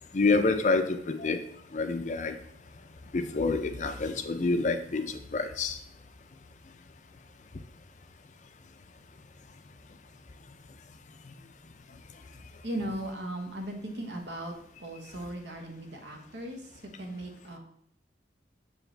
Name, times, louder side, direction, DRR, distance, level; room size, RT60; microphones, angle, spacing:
voice 1, 0.1-1.4 1.7-2.4 3.1-5.8, left 3 dB, 40° left, 8 dB, 0.4 m, -27 dB
voice 2, 12.6-14.5 14.8-17.6, right 1 dB, 80° right, 2 dB, 1.1 m, -37 dB
6.2 x 4.6 x 3.3 m, 0.71 s
head